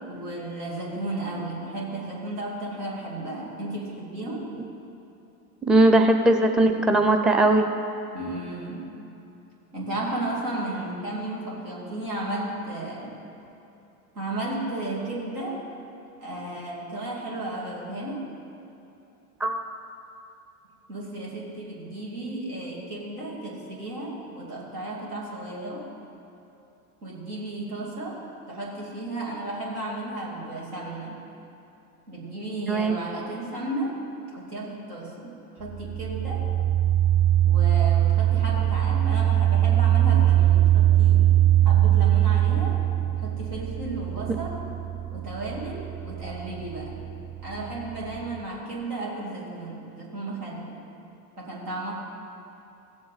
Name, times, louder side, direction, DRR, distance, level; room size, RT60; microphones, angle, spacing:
voice 1, 0.1-4.5 8.1-8.9 9.7-13.2 14.1-15.6 16.2-18.3 20.9-25.9 27.0-31.2 32.1-34.0 34.4-36.5 37.4-41.3 41.6-42.8 43.2-44.7 45.1-47.0 47.4-50.8 51.4-51.9, right 2 dB, 80° right, -4 dB, 2.8 m, -34 dB
voice 2, 5.7-7.7 19.4-19.6 32.7-33.0, right 2 dB, ahead, 5 dB, 0.5 m, -19 dB
sound 1, 35.6-48.4, right 12 dB, 60° right, 1.3 m, -22 dB
15.5 x 7.7 x 4.0 m, 2.8 s
hypercardioid pair, 80°, 45 cm